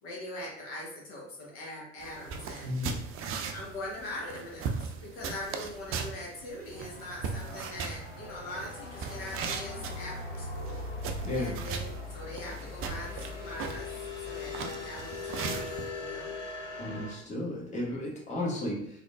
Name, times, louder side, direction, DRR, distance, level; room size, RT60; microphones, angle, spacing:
voice 1, 0.0-2.7 3.5-10.8 11.3-13.9 14.2-16.3, left 1 dB, 65° left, -3 dB, 1.1 m, -42 dB
sound 1, 2.0-15.9, right 5 dB, 40° right, 0.5 m, -39 dB
voice 2, 2.6-3.0 11.2-11.5 16.8-19.0, left 1 dB, 20° left, -4 dB, 1.2 m, -33 dB
sound 2, 6.7-17.1, left 3 dB, 90° left, 0.7 m, -40 dB
3.6 x 3.4 x 2.3 m, 0.70 s
figure-of-eight pair, 60°, 35 cm